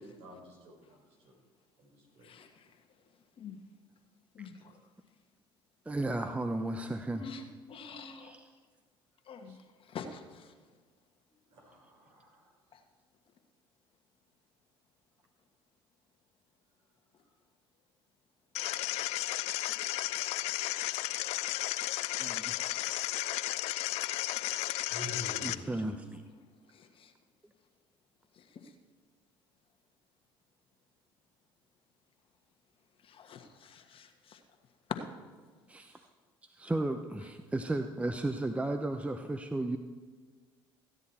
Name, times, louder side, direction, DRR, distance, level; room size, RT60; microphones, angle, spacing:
voice 1, 0.0-1.3 1.8-2.3 9.4-9.6 11.5-12.6 22.7-23.1 24.8-25.9 35.8-36.1, left 1 dB, 60° right, 0 dB, 3.9 m, -49 dB
voice 2, 2.2-2.6 3.4-3.6 4.3-4.7 7.1-7.4 7.7-8.3 9.3-9.6 9.9-10.5 12.7-12.8 18.8-19.3 24.3-24.4 26.7-27.1 28.4-28.7 33.0-34.4 34.9-35.0, left 7 dB, 50° left, 6 dB, 1.4 m, -45 dB
voice 3, 5.9-7.4 8.2-8.5 22.2-22.6 25.4-26.2 35.7-36.0 36.4-39.8, right 2 dB, 10° right, 7 dB, 0.8 m, -34 dB
sound 1, 18.5-25.5, left 17 dB, 65° left, 0.4 m, -34 dB
15.0 x 9.8 x 4.3 m, 1.5 s
hypercardioid pair, 65°, 12 cm